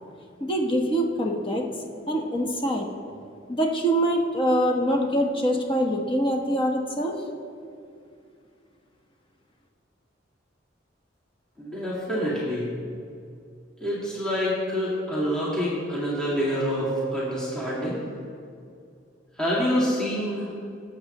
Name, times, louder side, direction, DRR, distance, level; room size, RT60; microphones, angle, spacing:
voice 1, 0.4-1.6 2.0-2.9 3.5-7.2, equal, 30° left, 1 dB, 1.2 m, -24 dB
voice 2, 11.6-12.7 13.8-18.0 19.4-20.5, equal, 5° left, -8 dB, 2.1 m, -26 dB
18.0 x 8.3 x 3.0 m, 2.4 s
head